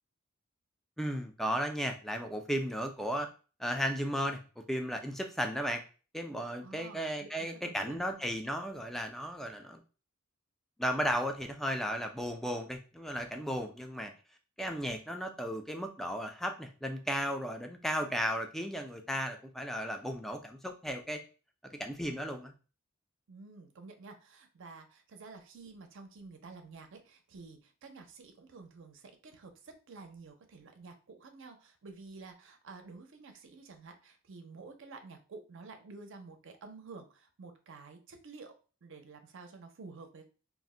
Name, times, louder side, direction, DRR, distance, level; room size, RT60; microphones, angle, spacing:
voice 1, 1.0-3.3 3.6-4.4 4.7-5.8 6.1-9.8 10.8-14.1 14.6-21.2 21.8-22.5, equal, ahead, 5 dB, 0.3 m, -35 dB
voice 2, 6.6-8.0 23.3-38.5 38.8-40.3, right 4 dB, 60° right, 6 dB, 0.5 m, -50 dB
2.5 x 2.1 x 3.6 m, 0.36 s
head